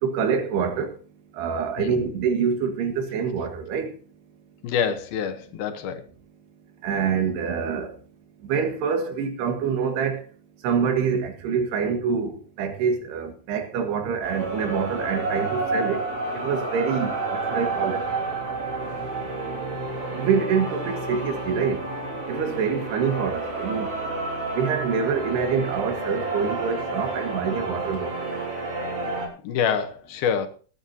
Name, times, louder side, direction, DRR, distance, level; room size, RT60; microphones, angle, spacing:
voice 1, 0.0-1.0 1.3-4.0 6.8-8.0 8.4-10.3 10.6-16.1 16.3-18.1 18.8-19.0 20.1-21.9 22.3-23.9 24.5-28.3, right 6 dB, 85° right, 3.8 m, -26 dB
voice 2, 4.6-6.0 29.4-30.5, left 7 dB, 75° left, 2.9 m, -26 dB
sound 1, 14.2-29.3, right 3 dB, 40° right, 4.0 m, -30 dB
20.5 x 10.0 x 2.8 m
omnidirectional pair, 4.6 m